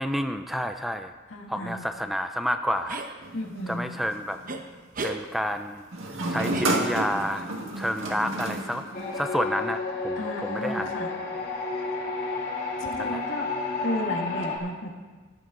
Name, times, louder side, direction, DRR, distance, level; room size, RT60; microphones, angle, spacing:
voice 1, 0.0-1.1 1.5-3.0 3.7-4.4 5.0-5.8 6.3-7.5 7.8-8.8 9.2-10.9 13.0-13.2, equal, ahead, 7 dB, 0.4 m, -29 dB
voice 2, 1.3-1.8 3.3-3.9 10.2-11.1 12.8-13.5 13.8-14.9, left 1 dB, 70° left, 1 dB, 2.0 m, -33 dB
sound 1, 2.9-3.1 4.5-4.6 4.9-5.2 6.5-7.2, right 3 dB, 45° right, 1.0 m, -34 dB
sound 2, 3.2-4.5 5.9-9.5, right 1 dB, 85° right, 1.8 m, -31 dB
sound 3, 8.9-14.6, left 3 dB, 50° left, 2.5 m, -31 dB
14.0 x 12.0 x 3.8 m, 1.4 s
head